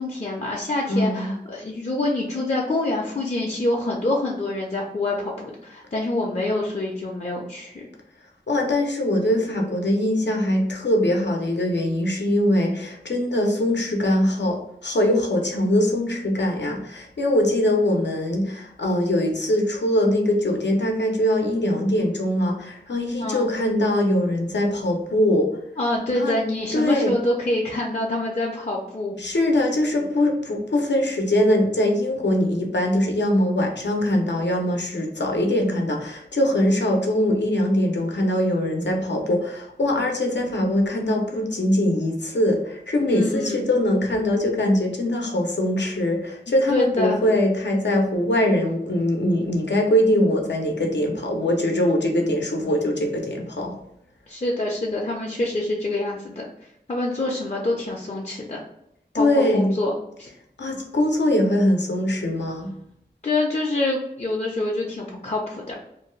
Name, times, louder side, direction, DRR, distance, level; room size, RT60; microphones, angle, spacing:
voice 1, 0.0-7.8 23.2-23.5 25.8-29.2 43.1-43.7 46.7-47.2 54.3-56.4 56.9-58.6 59.2-59.9 60.2-60.3 63.2-65.7, left 2 dB, 40° left, -3 dB, 0.5 m, -26 dB
voice 2, 0.9-1.3 8.5-25.5 26.1-26.3 26.7-27.1 29.2-53.8 59.1-59.7 60.6-62.7, left 1 dB, 85° left, 1 dB, 0.6 m, -22 dB
2.6 x 2.2 x 3.1 m, 0.78 s
wide cardioid pair, 40°, 18 cm